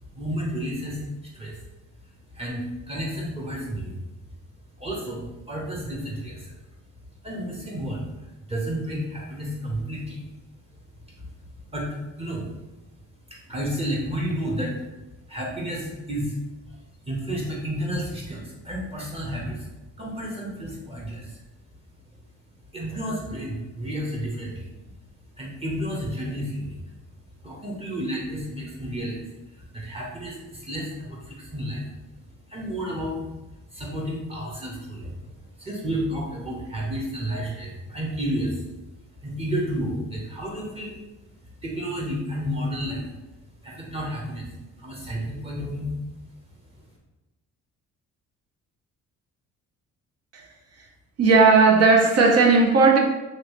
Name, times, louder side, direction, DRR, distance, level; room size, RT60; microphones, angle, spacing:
voice 1, 0.0-1.6 2.3-4.0 4.8-6.5 7.2-10.2 10.7-10.8 11.2-11.3 11.7-12.5 13.3-14.8 15.3-16.4 16.7-19.7 20.0-21.4 22.7-24.7 25.4-26.8 27.4-29.2 29.5-31.9 32.5-33.2 33.7-38.7 39.2-40.9 41.6-43.0 43.6-45.9, equal, 20° right, -4 dB, 0.9 m, -31 dB
voice 2, 51.2-53.0, right 4 dB, 55° right, 2 dB, 0.7 m, -16 dB
3.0 x 3.0 x 3.1 m, 1.0 s
cardioid pair, 90°, 30 cm